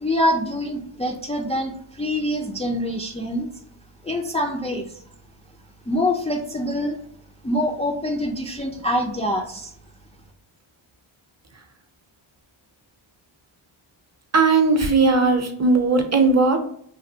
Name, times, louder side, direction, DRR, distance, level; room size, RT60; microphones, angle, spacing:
voice 1, 0.0-3.5 4.0-5.0 5.9-7.0 7.4-9.7, left 1 dB, 15° left, 0 dB, 0.3 m, -25 dB
voice 2, 14.3-16.6, right 3 dB, 35° right, 5 dB, 0.6 m, -18 dB
3.3 x 2.2 x 2.7 m, 0.64 s
cardioid pair, 55°, 49 cm